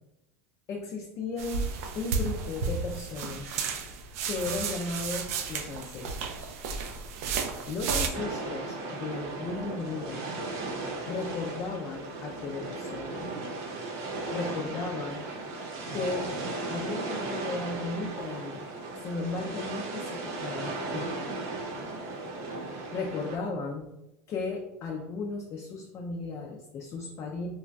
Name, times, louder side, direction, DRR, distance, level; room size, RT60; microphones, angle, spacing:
voice 1, 0.7-1.7 2.0-3.6 4.3-6.5 7.7-10.2 11.1-13.3 14.3-15.3 15.9-16.3 16.7-18.7 19.0-21.1 22.9-24.0 24.3-27.5, left 3 dB, 35° left, 1 dB, 0.4 m, -35 dB
sound 1, 1.4-8.1, right 5 dB, 75° right, 0.4 m, -33 dB
sound 2, 8.1-23.4, right 2 dB, 55° right, 0.8 m, -36 dB
3.0 x 2.2 x 2.5 m, 0.92 s
supercardioid pair, 115°, 8 cm